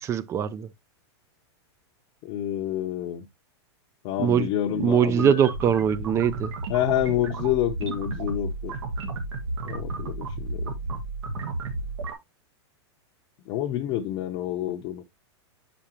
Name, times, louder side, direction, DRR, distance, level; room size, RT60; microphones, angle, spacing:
voice 1, 0.0-0.7 4.2-4.5 4.8-6.5, right 8 dB, 20° right, 0.4 m, -22 dB
voice 2, 2.2-3.3 4.0-5.3 6.7-8.7 9.6-10.7 13.5-15.0, left 12 dB, 40° left, 0.7 m, -28 dB
sound 1, 5.0-12.1, right 2 dB, 85° right, 1.9 m, -33 dB
7.2 x 5.1 x 2.9 m
supercardioid pair, 140°, 14 cm